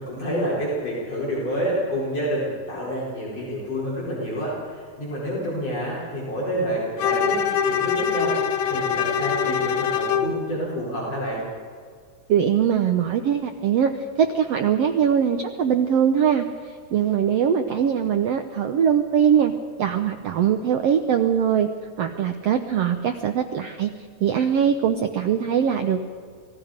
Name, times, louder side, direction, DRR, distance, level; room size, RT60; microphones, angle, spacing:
voice 1, 0.0-8.4 8.7-11.4, equal, 45° left, -7 dB, 5.7 m, -28 dB
Bowed string instrument, 7.0-10.4, left 7 dB, 70° left, 2.6 m, -23 dB
voice 2, 12.3-19.5 19.8-21.7 22.0-23.9 24.2-26.1, right 8 dB, 80° right, 6 dB, 1.4 m, -21 dB
27.5 x 19.0 x 5.2 m, 2.1 s
omnidirectional pair, 3.9 m